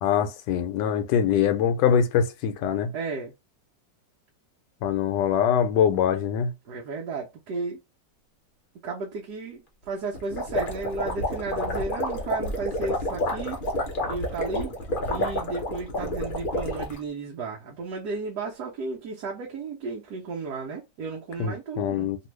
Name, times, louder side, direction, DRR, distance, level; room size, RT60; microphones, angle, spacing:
voice 1, 0.0-2.9 4.8-6.5 21.4-22.2, left 8 dB, 80° left, 1.2 m, -23 dB
voice 2, 2.9-3.3 6.6-7.8 8.8-13.6 14.1-14.8 15.1-22.1, right 4 dB, 70° right, 1.2 m, -34 dB
sound 1, 10.1-17.0, left 1 dB, 45° left, 0.7 m, -29 dB
3.0 x 2.6 x 3.1 m
omnidirectional pair, 2.0 m